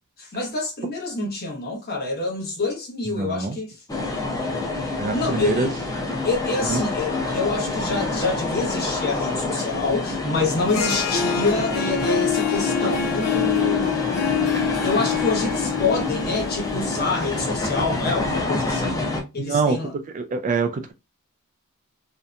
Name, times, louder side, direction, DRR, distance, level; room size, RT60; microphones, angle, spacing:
voice 1, 0.2-3.8 5.1-5.7 6.2-14.0 14.5-19.0 19.3-19.9, left 3 dB, 45° left, 0.9 m, -27 dB
voice 2, 3.1-3.6 5.0-5.7 6.7-6.8 19.4-20.9, right 4 dB, 35° right, 0.3 m, -25 dB
sound 1, 3.9-19.2, left 2 dB, 15° left, 0.6 m, -27 dB
Harp, 10.5-17.6, left 7 dB, 85° left, 0.6 m, -26 dB
2.7 x 2.1 x 2.4 m
head